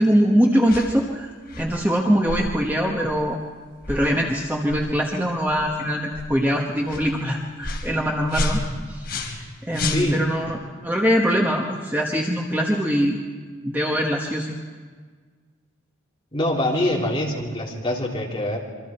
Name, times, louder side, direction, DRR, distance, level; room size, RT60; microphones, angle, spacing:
voice 1, 0.0-1.3 1.6-3.4 3.9-8.6 8.9-9.1 9.7-13.2 13.6-14.6, equal, 10° right, 0 dB, 1.3 m, -22 dB
sound 1, 0.7-0.9 1.5-1.7 2.3-2.5 3.0-3.2 3.8-4.0 4.7-4.8 5.5-5.6 6.1-6.3 6.9-7.1 7.6-7.9 8.3-9.5 9.7-10.4, left 2 dB, 50° left, 3.5 m, -29 dB
voice 2, 9.7-10.2 16.3-18.6, left 1 dB, 25° left, -3 dB, 3.5 m, -24 dB
27.0 x 23.5 x 4.4 m, 1.5 s
head